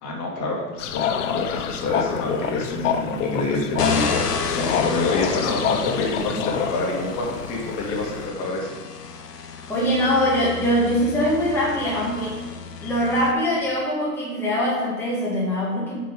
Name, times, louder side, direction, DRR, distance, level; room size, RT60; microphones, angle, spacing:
voice 1, 0.0-8.7, left 2 dB, 35° left, -2 dB, 2.3 m, -27 dB
sound 1, 0.8-8.3, left 7 dB, 50° left, 0.8 m, -27 dB
sound 2, 3.8-13.3, left 5 dB, 80° left, 1.1 m, -32 dB
voice 2, 9.7-12.5 12.8-16.0, equal, 5° left, -7 dB, 1.6 m, -22 dB
7.4 x 5.4 x 5.2 m, 1.3 s
hypercardioid pair, 110°, 47 cm